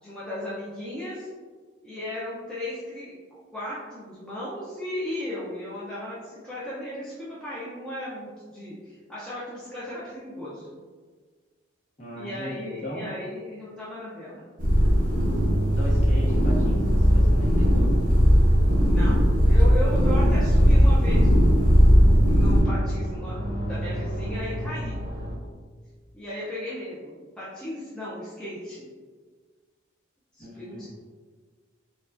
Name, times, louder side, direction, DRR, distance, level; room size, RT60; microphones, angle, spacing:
voice 1, 0.0-1.3 1.8-3.2 3.5-10.8 12.2-14.4 18.9-21.6 22.3-24.9 26.1-28.9 30.3-30.9, left 1 dB, 5° left, -9 dB, 0.5 m, -36 dB
voice 2, 12.0-13.2 15.6-17.9 30.4-30.9, equal, 35° left, -6 dB, 1.0 m, -37 dB
sound 1, 14.6-22.6, equal, 40° right, 0.9 m, -18 dB
sound 2, 14.7-25.4, right 1 dB, 90° right, 0.8 m, -31 dB
4.6 x 2.3 x 2.5 m, 1.5 s
head